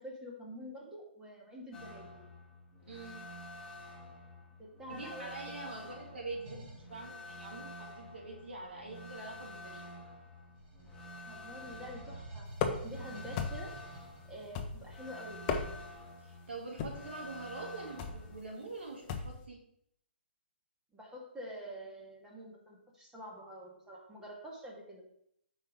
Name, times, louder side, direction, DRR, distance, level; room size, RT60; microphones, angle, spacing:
voice 1, 0.0-2.3 4.6-5.4 11.3-15.5 20.9-25.0, equal, 10° right, -2 dB, 1.9 m, -47 dB
sound 1, 1.7-18.4, left 1 dB, 10° left, 1.9 m, -50 dB
voice 2, 2.9-3.2 4.9-9.9 16.2-19.6, right 3 dB, 75° right, -1 dB, 2.5 m, -45 dB
sound 2, 6.4-6.9 8.2-10.1 10.5-14.7, right 1 dB, 35° right, 2.8 m, -50 dB
sound 3, 12.5-13.0 13.4-13.8 14.5-15.0 15.3-16.0 16.8-17.1 18.0-18.3 19.1-19.4, left 6 dB, 30° left, 0.9 m, -35 dB
7.9 x 5.5 x 3.7 m, 0.71 s
figure-of-eight pair, 135°, 6 cm